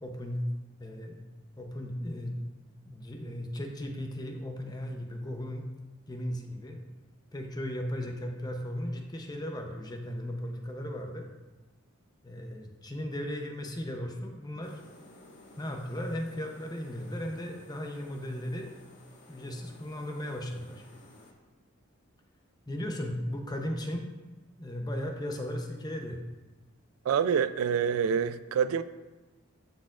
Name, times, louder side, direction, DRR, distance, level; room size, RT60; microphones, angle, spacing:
voice 1, 0.0-0.4 0.8-1.2 1.6-2.4 2.8-5.7 6.1-6.8 7.3-11.3 12.2-14.8 15.6-18.7 19.3-20.8 22.7-24.1 24.6-26.2, equal, 20° left, 3 dB, 0.6 m, -36 dB
sound 1, 14.6-21.3, left 2 dB, 55° left, 1.3 m, -55 dB
voice 2, 27.0-28.8, right 7 dB, 85° right, 14 dB, 0.3 m, -26 dB
11.5 x 4.4 x 2.4 m, 1.2 s
head